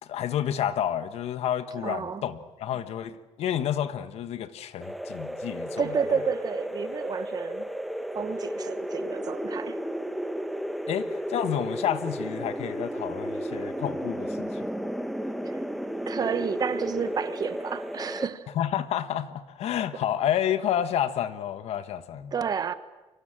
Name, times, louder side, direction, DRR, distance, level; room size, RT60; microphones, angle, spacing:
voice 1, 0.0-6.2 10.9-14.7 18.5-22.3, left 10 dB, 70° left, 1.5 m, -30 dB
voice 2, 1.8-2.3 5.8-7.7 8.1-9.8 16.1-18.5 22.3-22.7, right 6 dB, 35° right, 1.3 m, -30 dB
sound 1, 4.8-18.3, equal, ahead, 1.2 m, -33 dB
29.0 x 24.5 x 7.6 m
cardioid pair, 160°, 11 cm